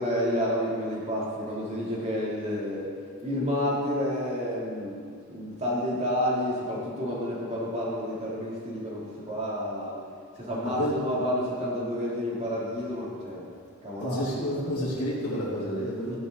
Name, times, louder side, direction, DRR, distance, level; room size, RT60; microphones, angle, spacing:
voice 1, 0.0-2.9 3.2-5.0 5.3-10.0 10.4-13.5 13.8-14.2 16.0-16.2, equal, 30° right, -6 dB, 3.1 m, -30 dB
voice 2, 10.6-10.9 14.0-16.2, equal, 70° left, -11 dB, 2.7 m, -30 dB
15.5 x 10.0 x 4.0 m, 2.2 s
head